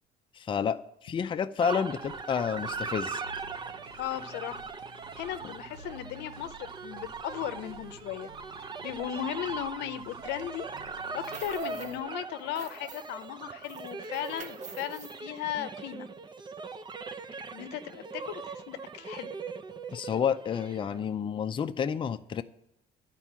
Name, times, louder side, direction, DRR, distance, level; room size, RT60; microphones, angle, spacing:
voice 1, 0.3-3.2 19.9-22.4, left 7 dB, 30° left, 9 dB, 0.5 m, -30 dB
sound 1, 1.6-21.1, right 4 dB, 25° right, 0.6 m, -40 dB
sound 2, 2.0-12.0, right 2 dB, 70° right, 1.3 m, -53 dB
voice 2, 4.0-4.6 5.2-8.3 8.8-10.7 11.1-16.1 17.5-19.3, left 11 dB, 85° left, 11 dB, 0.6 m, -36 dB
sound 3, 11.0-12.0 12.3-13.3 13.6-15.2, right 4 dB, 45° right, 1.4 m, -47 dB
11.0 x 4.6 x 7.3 m, 0.78 s
cardioid pair, 110°, 17 cm